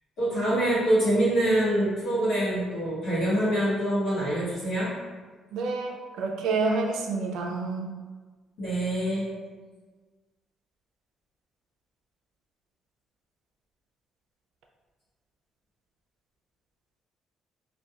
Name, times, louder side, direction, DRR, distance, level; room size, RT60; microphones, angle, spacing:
voice 1, 0.2-4.9 8.6-9.3, right 1 dB, 70° left, -12 dB, 0.9 m, -25 dB
voice 2, 5.5-7.9, right 3 dB, 85° right, 2 dB, 0.3 m, -28 dB
2.3 x 2.1 x 2.7 m, 1.4 s
cardioid pair, 115°, 0 cm